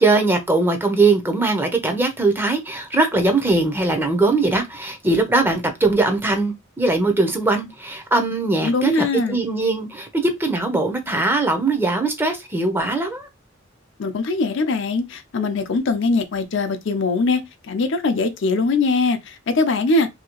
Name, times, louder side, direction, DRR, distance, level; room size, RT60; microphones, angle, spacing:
voice 1, 0.0-13.3, right 2 dB, 10° right, 0.6 m, -20 dB
voice 2, 8.6-9.4 14.0-20.1, left 3 dB, 65° left, 0.5 m, -21 dB
2.8 x 2.7 x 2.9 m
head